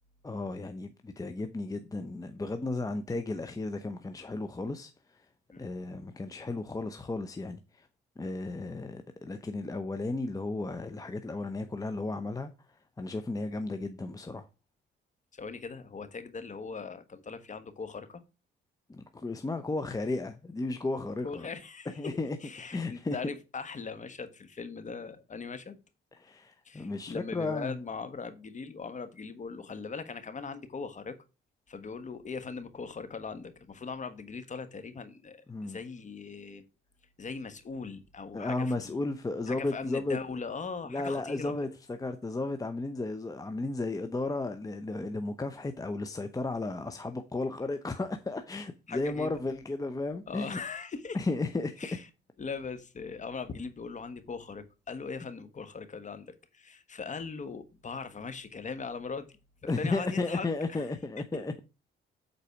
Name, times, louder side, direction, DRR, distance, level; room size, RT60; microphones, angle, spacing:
voice 1, 0.2-5.3 5.6-7.9 8.2-14.5 18.9-21.5 22.0-23.2 26.2-27.8 35.5-35.8 38.3-40.2 40.9-50.6 51.1-51.9 59.7-61.6, left 2 dB, 20° left, 0.7 m, -34 dB
voice 2, 15.3-18.2 21.2-25.8 26.6-31.2 31.7-36.7 37.2-39.0 39.5-41.7 48.9-49.3 50.3-51.2 51.8-52.1 52.4-59.4 59.8-60.9, left 5 dB, 40° left, 1.4 m, -40 dB
8.4 x 4.1 x 5.8 m
cardioid pair, 90°, 20 cm